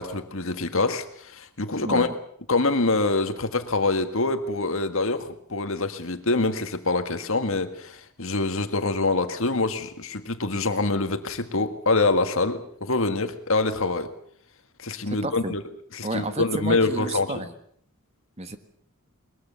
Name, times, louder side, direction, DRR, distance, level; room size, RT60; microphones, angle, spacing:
voice 1, 0.0-2.1 2.5-14.1 14.8-15.6 15.9-17.4, left 3 dB, 60° left, 9 dB, 1.8 m, -25 dB
voice 2, 1.8-2.1 15.1-15.5 16.0-17.5 18.4-18.6, right 2 dB, 30° right, 9 dB, 1.5 m, -31 dB
21.5 x 21.5 x 7.0 m, 0.63 s
head